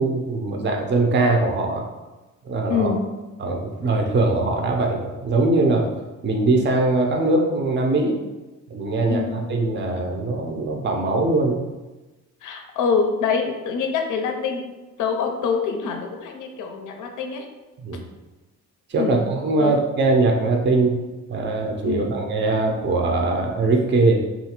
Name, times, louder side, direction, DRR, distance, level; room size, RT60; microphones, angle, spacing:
voice 1, 0.0-1.8 2.5-2.9 3.4-5.9 6.2-8.2 8.7-11.6 17.8-18.0 18.9-21.0 21.3-24.2, right 2 dB, 35° right, 1 dB, 0.5 m, -21 dB
voice 2, 2.7-3.1 9.1-9.3 12.4-14.6 15.0-17.5 19.0-19.2 19.6-19.7 21.8-22.1, left 5 dB, 70° left, 3 dB, 0.5 m, -25 dB
2.7 x 2.4 x 2.9 m, 1.1 s
supercardioid pair, 55°, 32 cm